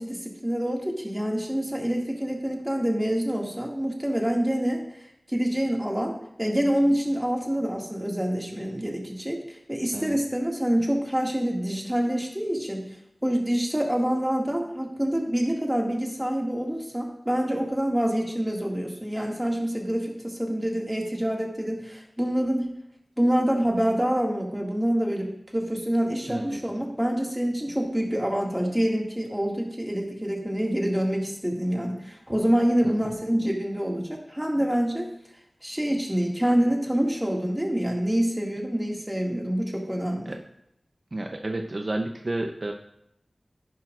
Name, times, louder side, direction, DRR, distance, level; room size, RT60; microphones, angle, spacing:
voice 1, 0.0-4.8 5.3-12.8 13.2-22.7 23.2-35.1 35.6-40.3, equal, 10° right, 0 dB, 2.1 m, -26 dB
voice 2, 26.3-26.6 32.8-33.1 40.3-40.4 41.1-42.7, right 2 dB, 50° right, 3 dB, 0.7 m, -31 dB
11.0 x 10.0 x 2.5 m, 0.77 s
wide cardioid pair, 45°, 0 cm